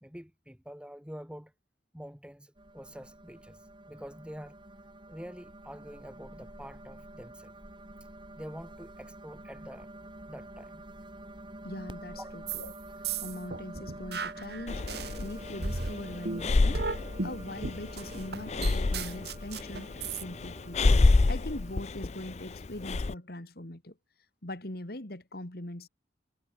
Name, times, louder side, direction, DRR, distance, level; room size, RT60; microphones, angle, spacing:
voice 1, 0.0-1.5 1.9-4.6 5.1-7.6 8.3-9.9 10.3-10.8 12.1-12.4, equal, 5° right, 3.0 m, -46 dB
sound 1, 2.6-21.8, right 1 dB, 25° right, 3.2 m, -48 dB
voice 2, 11.6-12.7 13.2-20.8 21.3-23.9 24.4-25.9, left 1 dB, 55° left, 2.6 m, -41 dB
sound 2, 12.5-12.7 13.0-15.2 15.6-20.2, right 3 dB, 55° right, 2.6 m, -35 dB
Breathing, 14.7-23.1, left 3 dB, 35° left, 0.4 m, -28 dB
head